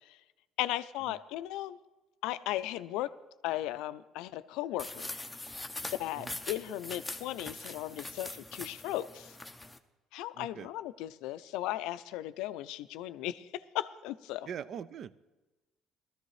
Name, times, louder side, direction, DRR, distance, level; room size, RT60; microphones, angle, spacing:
voice 1, 0.6-1.8 2.2-3.1 3.4-5.1 6.0-9.3 10.1-13.5 13.7-14.5, left 14 dB, 85° left, 14 dB, 0.4 m, -36 dB
sound 1, 4.8-9.8, left 2 dB, 10° left, 0.6 m, -42 dB
voice 2, 10.3-10.7 14.5-15.2, right 8 dB, 50° right, 16 dB, 0.4 m, -42 dB
18.5 x 13.5 x 3.2 m, 1.1 s
cardioid pair, 125°, 0 cm